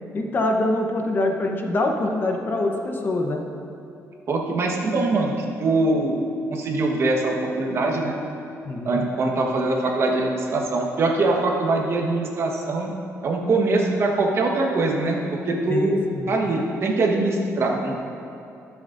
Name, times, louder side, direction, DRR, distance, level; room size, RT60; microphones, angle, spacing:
voice 1, 0.1-3.4 8.6-9.0 15.7-16.3, left 2 dB, 35° left, 2 dB, 1.0 m, -24 dB
voice 2, 4.3-8.1 8.8-12.9 13.2-18.0, right 2 dB, 50° right, 0 dB, 1.4 m, -23 dB
20.5 x 7.1 x 2.7 m, 2.7 s
cardioid pair, 125°, 6 cm